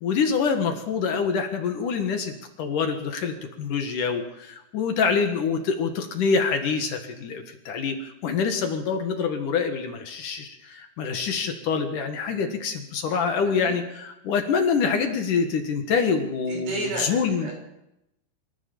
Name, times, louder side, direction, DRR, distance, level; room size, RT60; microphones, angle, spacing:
voice 1, 0.0-17.5, left 5 dB, 60° left, 6 dB, 2.8 m, -26 dB
voice 2, 13.3-13.8 16.5-17.5, right 2 dB, 90° right, 1 dB, 8.5 m, -33 dB
25.5 x 14.5 x 7.1 m, 0.86 s
omnidirectional pair, 4.7 m